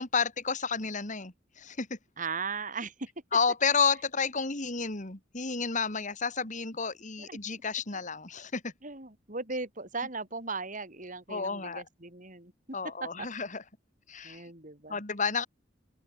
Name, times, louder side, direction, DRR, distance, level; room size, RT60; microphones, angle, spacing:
voice 1, 0.0-2.0 3.3-8.7 11.3-11.8 12.7-13.6 14.1-14.4 14.9-15.5, left 5 dB, 40° left, 2.7 m, -31 dB
voice 2, 2.2-3.1 7.2-7.6 7.9-8.0 8.8-12.5 12.8-13.3 14.2-15.0, right 4 dB, 45° right, 5.2 m, -38 dB
open air
head